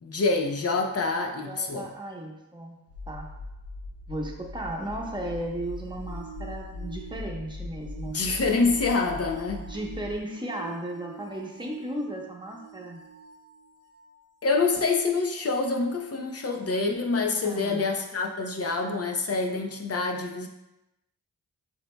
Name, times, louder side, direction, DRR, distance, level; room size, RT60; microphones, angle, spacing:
voice 1, 0.0-1.9 8.1-9.6 14.4-20.5, left 3 dB, 40° left, 2 dB, 0.7 m, -26 dB
voice 2, 1.4-2.8 3.1-3.3 4.1-8.2 9.7-13.0 17.4-17.9, right 1 dB, 15° right, 0 dB, 0.9 m, -35 dB
sound 1, 2.9-10.2, left 2 dB, 80° left, 0.6 m, -40 dB
sound 2, 4.5-14.2 16.5-16.6, right 8 dB, 60° right, 0.6 m, -48 dB
7.3 x 2.8 x 2.2 m, 0.94 s
cardioid pair, 60°, 36 cm